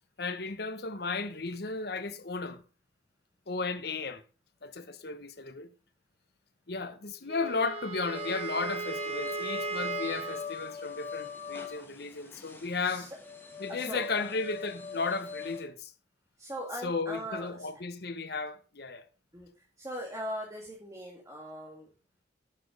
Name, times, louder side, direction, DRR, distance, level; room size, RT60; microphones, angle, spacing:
voice 1, 0.2-2.6 3.5-4.2 4.6-5.7 6.7-13.1 13.6-15.9 16.8-19.0, left 4 dB, 60° left, 1.0 m, -34 dB
Wind instrument woodwind instrument, 7.3-10.5, right 5 dB, 35° right, 0.9 m, -36 dB
sound 1, 8.1-15.6, left 6 dB, 10° left, 1.8 m, -41 dB
voice 2, 13.7-14.4 16.4-17.7 19.3-21.9, equal, 20° right, 2.0 m, -40 dB
10.5 x 6.0 x 5.1 m
head